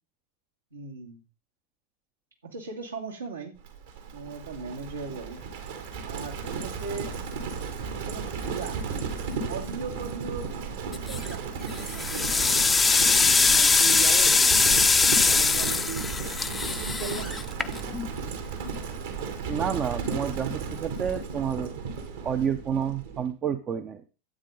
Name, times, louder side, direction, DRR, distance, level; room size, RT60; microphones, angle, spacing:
voice 1, 0.7-1.2 2.4-3.6 4.1-5.4 6.1-7.1 7.9-8.9 9.5-10.5 10.8-14.5 15.1-16.2 16.7-17.5, right 5 dB, 75° right, -1 dB, 2.5 m, -38 dB
Livestock farm animals working animals, 3.6-23.3, right 5 dB, 55° right, 2.1 m, -34 dB
sound 1, 10.9-11.3 11.8-18.1, left 4 dB, 15° left, 0.7 m, -22 dB
voice 2, 19.5-21.8 22.2-24.1, right 8 dB, 25° right, 8 dB, 0.7 m, -29 dB
12.5 x 8.4 x 3.8 m, 0.34 s
figure-of-eight pair, 90°, 0 cm